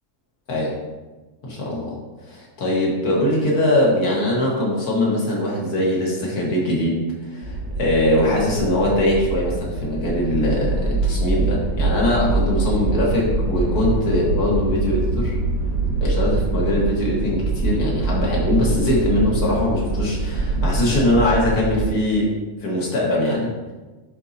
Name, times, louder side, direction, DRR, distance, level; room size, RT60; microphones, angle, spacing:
voice 1, 1.4-15.3 16.0-22.3 22.6-23.7, left 1 dB, 90° left, -4 dB, 2.0 m, -21 dB
sound 1, 7.4-21.9, right 3 dB, 75° right, 1.6 m, -24 dB
10.5 x 4.1 x 2.7 m, 1.2 s
omnidirectional pair, 1.5 m